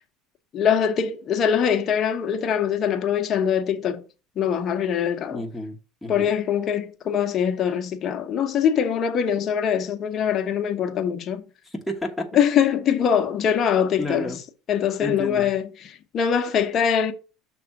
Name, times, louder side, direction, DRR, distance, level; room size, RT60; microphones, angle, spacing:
voice 1, 0.5-4.0 4.4-5.4 6.1-11.5 12.3-14.4 14.7-15.7 16.1-17.1, left 8 dB, 40° left, 0.9 m, -23 dB
voice 2, 5.3-6.3 11.6-12.3 14.0-14.4 15.0-15.5, left 1 dB, 5° left, 1.2 m, -31 dB
6.1 x 3.4 x 5.9 m
supercardioid pair, 130°, 0 cm